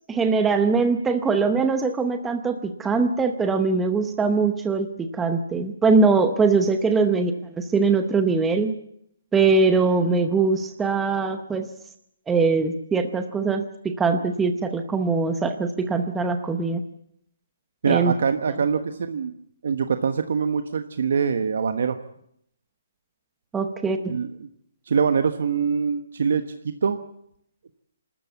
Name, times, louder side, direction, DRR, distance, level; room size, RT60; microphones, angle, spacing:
voice 1, 0.1-8.7 9.3-11.7 12.3-16.8 17.9-18.1 23.5-24.1, right 4 dB, 5° right, 7 dB, 0.8 m, -22 dB
voice 2, 17.8-19.3 19.6-22.0 24.1-24.5 24.9-27.0, right 6 dB, 50° right, 8 dB, 1.2 m, -24 dB
27.0 x 13.0 x 8.2 m, 0.72 s
hypercardioid pair, 175°, 0 cm